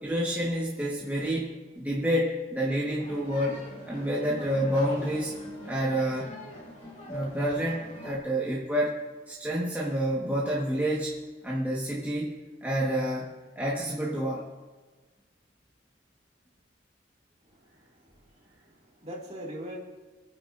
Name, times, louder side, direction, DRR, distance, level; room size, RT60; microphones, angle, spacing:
voice 1, 0.0-5.4 5.6-6.3 7.1-9.0 9.3-11.1 11.4-13.3 13.5-14.4, equal, 10° right, -6 dB, 1.5 m, -29 dB
sound 1, 3.0-8.2, right 1 dB, 40° left, 2.6 m, -42 dB
voice 2, 17.5-19.8, equal, 35° right, -3 dB, 2.5 m, -43 dB
27.0 x 9.5 x 2.7 m, 1.3 s
head